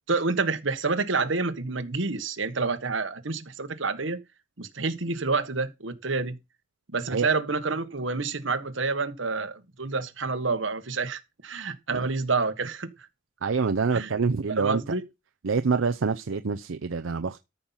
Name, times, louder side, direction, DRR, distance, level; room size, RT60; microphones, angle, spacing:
voice 1, 0.1-4.2 4.6-6.4 6.9-12.9 13.9-14.1 14.6-15.0, right 4 dB, 70° right, 1.4 m, -28 dB
voice 2, 13.4-14.8 15.4-17.4, right 5 dB, 85° right, 0.6 m, -26 dB
13.5 x 5.6 x 5.7 m
head